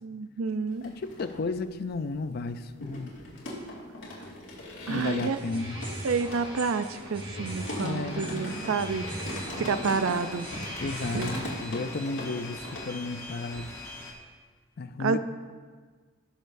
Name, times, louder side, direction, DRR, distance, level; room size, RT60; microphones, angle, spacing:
voice 1, 0.0-0.9 4.9-5.4 6.0-9.1 9.6-10.5 11.1-11.3 15.0-15.2, right 5 dB, 80° right, 12 dB, 0.5 m, -29 dB
sound 1, 0.7-1.7 2.0-13.3 13.5-14.1, left 1 dB, 65° left, 2.4 m, -40 dB
voice 2, 0.8-3.1 4.9-5.8 7.8-8.5 10.8-13.8 14.8-15.2, left 3 dB, 50° left, 11 dB, 0.4 m, -33 dB
sound 2, 5.3-11.8, right 1 dB, 25° right, 1.4 m, -40 dB
sound 3, 8.5-14.1, left 2 dB, 15° left, 1.0 m, -43 dB
17.0 x 6.6 x 2.6 m, 1.5 s
head